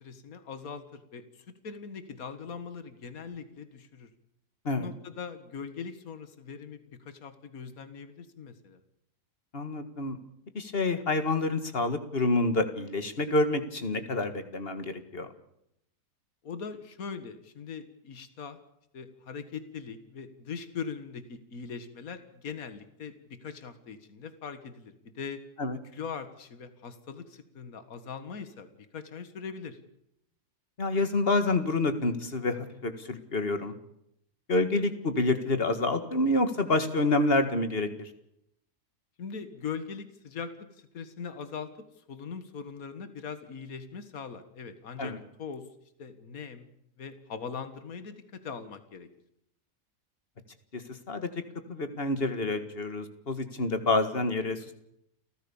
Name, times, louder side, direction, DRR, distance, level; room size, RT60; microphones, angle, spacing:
voice 1, 0.0-4.1 4.7-8.8 16.4-18.6 18.9-25.4 25.9-29.8 39.2-41.7 42.1-45.7 46.0-46.7 47.0-49.1, left 6 dB, 60° left, 11 dB, 2.1 m, -41 dB
voice 2, 9.5-10.2 10.6-15.3 25.6-25.8 30.8-33.8 34.5-38.1 45.0-45.2 50.7-51.3 51.7-54.7, left 2 dB, 35° left, 9 dB, 2.0 m, -28 dB
29.5 x 14.5 x 7.1 m, 0.77 s
omnidirectional pair, 1.7 m